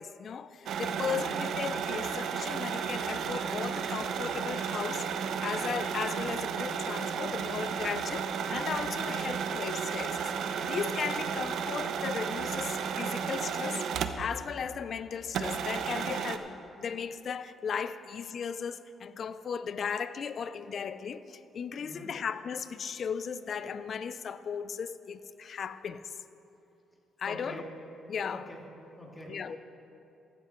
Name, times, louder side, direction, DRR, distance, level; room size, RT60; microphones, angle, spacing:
voice 1, 0.0-13.8 14.2-16.5 16.8-26.0 27.2-27.6 28.1-28.4 29.3-29.6, left 6 dB, 55° left, 0.5 m, -36 dB
sound 1, 0.7-14.4 14.7-14.8 15.3-16.4, right 7 dB, 75° right, 0.6 m, -33 dB
voice 2, 1.1-1.5 9.1-9.3 21.8-22.1 27.2-27.6 28.3-28.6 29.0-29.6, equal, 15° left, 2.7 m, -46 dB
15.0 x 12.5 x 3.1 m
cardioid pair, 90°, 0 cm